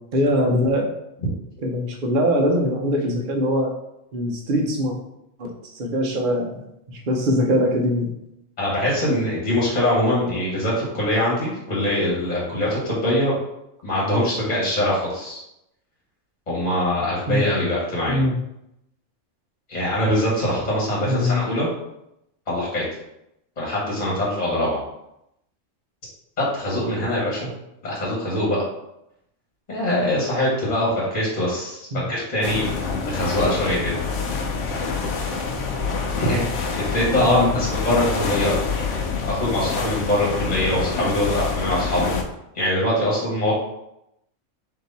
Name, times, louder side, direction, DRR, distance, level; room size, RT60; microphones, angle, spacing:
voice 1, 0.1-0.9 1.6-3.7 4.1-4.9 5.4-6.5 6.9-8.1 17.3-17.4 18.1-18.4 21.0-21.4 31.9-32.0 37.2-37.5, equal, 50° right, 1 dB, 0.8 m, -22 dB
voice 2, 8.6-13.3 13.8-15.4 16.5-18.2 19.7-21.7 22.5-22.8 23.6-24.8 26.5-27.5 27.8-28.6 29.7-32.6 33.1-34.0 36.2-36.4 36.7-38.9 39.2-42.2 42.5-43.5, left 1 dB, 35° left, -5 dB, 1.4 m, -23 dB
sound 1, 32.4-42.2, left 4 dB, 75° left, 0.9 m, -26 dB
3.7 x 2.8 x 4.0 m, 0.83 s
omnidirectional pair, 1.3 m